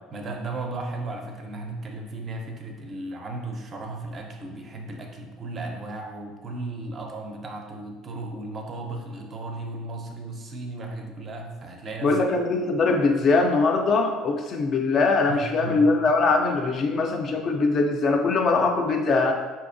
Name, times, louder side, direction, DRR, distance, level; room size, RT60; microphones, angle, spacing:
voice 1, 0.1-12.3 15.3-16.0, right 2 dB, 30° right, 2 dB, 0.4 m, -35 dB
voice 2, 12.0-19.3, left 3 dB, 35° left, 4 dB, 0.3 m, -22 dB
4.2 x 2.6 x 2.5 m, 1.3 s
cardioid pair, 150°, 0 cm